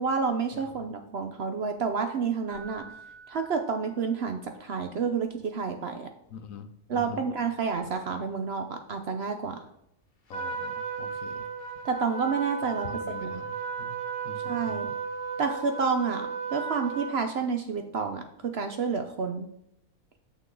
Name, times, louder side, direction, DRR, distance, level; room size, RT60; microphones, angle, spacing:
voice 1, 0.0-2.8 3.3-6.1 6.9-9.6 11.8-12.9 13.2-13.4 14.4-14.9 15.4-19.5, right 5 dB, 60° right, 7 dB, 0.7 m, -29 dB
voice 2, 0.5-0.8 6.3-7.2 10.3-11.4 12.8-14.0 14.2-14.9, left 6 dB, 70° left, 10 dB, 1.0 m, -44 dB
Keyboard (musical), 2.5-4.4 7.7-7.8, right 4 dB, 80° right, 2.9 m, -49 dB
Trumpet, 10.3-17.2, right 5 dB, 35° left, 1.2 m, -34 dB
6.7 x 6.1 x 3.8 m, 0.77 s
omnidirectional pair, 1.5 m